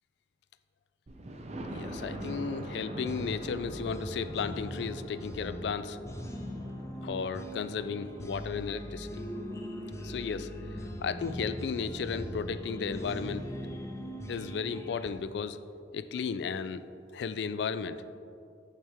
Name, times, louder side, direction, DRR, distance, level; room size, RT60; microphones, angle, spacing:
Thunder, 1.1-10.8 11.3-11.4 11.9-12.0 12.2-12.3, right 1 dB, 40° right, 0.6 m, -45 dB
voice 1, 1.7-6.0 7.0-9.3 10.0-10.5 11.0-13.5 14.3-15.6 15.9-16.8 17.1-18.0, left 5 dB, 70° left, 13 dB, 0.3 m, -34 dB
sound 1, 1.9-15.1, equal, 15° left, 0.6 m, -41 dB
8.6 x 6.5 x 3.4 m, 2.5 s
head